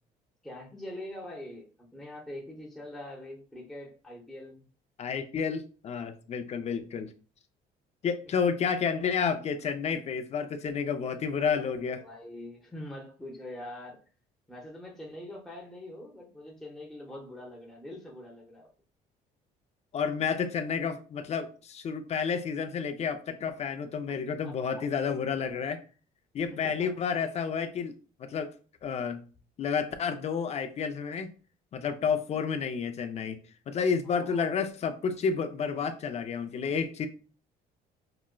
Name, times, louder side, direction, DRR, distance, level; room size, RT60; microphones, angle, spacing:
voice 1, 0.4-4.6 11.3-14.0 14.5-18.7 24.4-24.8 26.6-26.9 34.0-34.5, left 1 dB, ahead, 0.8 m, -44 dB
voice 2, 5.0-7.1 8.0-12.0 19.9-25.8 26.3-27.9 28.2-28.5 28.8-29.2 29.6-31.3 31.7-33.4 33.7-37.1, left 6 dB, 40° left, 0.4 m, -30 dB
4.9 x 2.0 x 2.2 m
cardioid pair, 110°, 17 cm